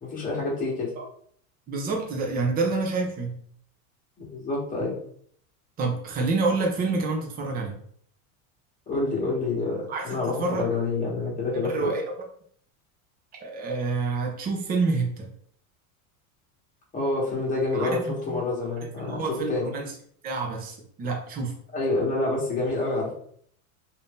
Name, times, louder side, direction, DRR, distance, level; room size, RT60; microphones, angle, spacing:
voice 1, 0.0-0.9 4.2-4.9 8.9-11.9 16.9-19.7 21.7-23.1, left 3 dB, 20° left, -4 dB, 1.2 m, -27 dB
voice 2, 1.7-3.4 5.8-7.8 9.9-10.6 11.6-12.0 13.4-15.3 17.7-18.0 18.3-18.4 19.0-19.9 20.2-21.5, right 3 dB, 20° right, 1 dB, 0.6 m, -28 dB
2.8 x 2.6 x 3.5 m, 0.62 s
supercardioid pair, 140°, 44 cm